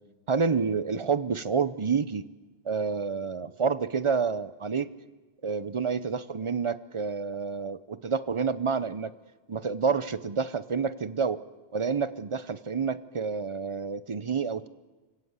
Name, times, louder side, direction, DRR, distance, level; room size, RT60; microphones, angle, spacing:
voice 1, 0.3-2.2 2.7-4.9 5.4-9.1 9.5-11.4 11.7-14.7, right 5 dB, 35° right, 15 dB, 0.7 m, -28 dB
25.5 x 16.5 x 8.2 m, 1.2 s
omnidirectional pair, 1.1 m